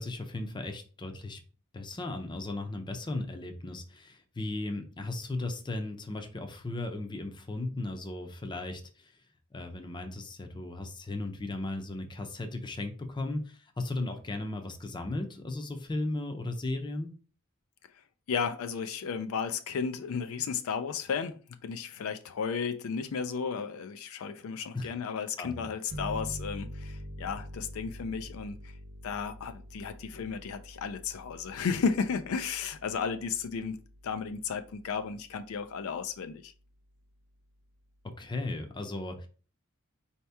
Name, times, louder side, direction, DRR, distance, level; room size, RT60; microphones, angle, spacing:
voice 1, 0.0-1.4 1.7-9.1 9.5-17.1 24.7-24.9 25.4-25.5 38.2-39.3, left 2 dB, 20° left, 0.6 m, -36 dB
voice 2, 18.3-21.4 21.6-28.7 29.0-36.5, left 6 dB, 70° left, 0.4 m, -34 dB
sound 1, 25.9-35.2, equal, 70° right, 0.8 m, -45 dB
4.5 x 2.8 x 3.4 m
head